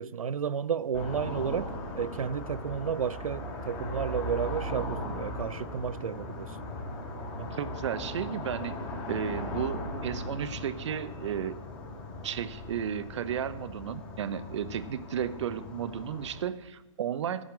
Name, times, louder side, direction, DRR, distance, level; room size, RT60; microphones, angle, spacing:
voice 1, 0.0-6.6, right 7 dB, 80° right, 0.5 m, -32 dB
sound 1, 0.9-16.4, left 1 dB, 30° left, 3.0 m, -38 dB
voice 2, 7.3-8.7 9.1-11.6 12.2-17.4, right 8 dB, 60° right, 0.8 m, -33 dB
13.0 x 5.8 x 9.4 m
hypercardioid pair, 130°, 17 cm